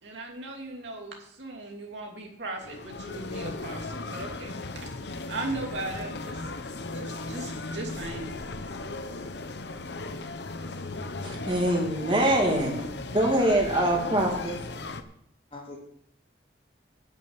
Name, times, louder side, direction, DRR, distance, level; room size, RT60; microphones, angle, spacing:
voice 1, 0.0-4.5 5.3-6.4 6.9-8.4, right 2 dB, 70° right, 0 dB, 2.7 m, -37 dB
sound 1, 2.6-15.0, left 2 dB, 60° left, 0.8 m, -36 dB
voice 2, 11.2-12.8 13.1-14.6, right 1 dB, 25° right, 0 dB, 2.4 m, -24 dB
voice 3, 12.4-13.2 15.5-15.8, left 1 dB, 30° left, -1 dB, 2.8 m, -40 dB
10.5 x 6.5 x 8.8 m, 0.69 s
head